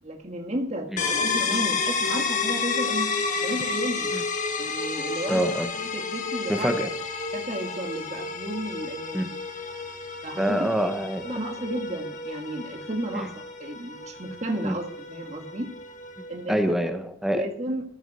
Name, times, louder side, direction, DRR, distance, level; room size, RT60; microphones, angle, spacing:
voice 1, 0.0-3.1 3.3-4.1 4.6-6.8 7.3-9.4 10.2-10.7 11.2-15.7 16.3-16.8 17.3-17.8, right 1 dB, 35° right, 3 dB, 1.7 m, -33 dB
sound 1, 1.0-16.5, left 4 dB, 40° left, 1.6 m, -31 dB
voice 2, 5.3-5.7 6.5-6.9 9.1-9.3 10.4-11.2 13.1-13.3 14.6-14.7 16.5-17.5, equal, ahead, 6 dB, 1.0 m, -25 dB
14.0 x 7.2 x 6.1 m, 0.68 s
head